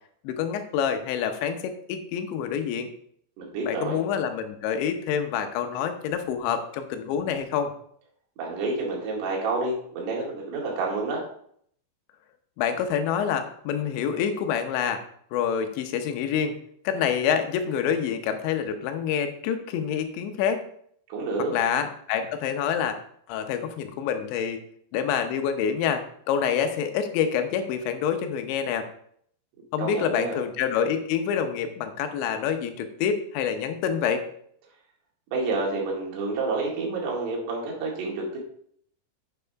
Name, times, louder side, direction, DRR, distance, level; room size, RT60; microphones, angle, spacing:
voice 1, 0.2-2.9 3.7-7.7 12.6-15.0 15.3-16.6 16.8-20.6 21.5-23.0 23.3-24.6 24.9-28.9 29.7-34.2, left 8 dB, 85° left, 7 dB, 3.2 m, -27 dB
voice 2, 3.4-4.0 8.4-11.2 21.1-21.5 29.8-30.4 35.3-38.4, right 3 dB, 70° right, -2 dB, 4.1 m, -29 dB
9.4 x 8.1 x 3.5 m, 0.65 s
omnidirectional pair, 5.1 m